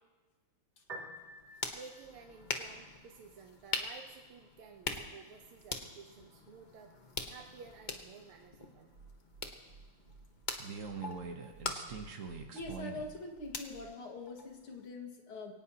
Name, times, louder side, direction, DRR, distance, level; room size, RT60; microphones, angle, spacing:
Piano, 0.8-13.8, right 1 dB, 25° right, 2.9 m, -58 dB
sound 1, 1.2-14.9, left 3 dB, 35° left, 0.7 m, -44 dB
voice 1, 1.7-7.0 7.3-8.9, right 5 dB, 80° right, 2 dB, 1.8 m, -53 dB
sound 2, 8.9-13.1 13.4-13.9, right 5 dB, 45° right, 1.2 m, -45 dB
voice 2, 12.5-15.5, left 2 dB, 85° left, 2 dB, 2.8 m, -44 dB
22.5 x 18.0 x 2.9 m, 1.3 s
omnidirectional pair, 2.4 m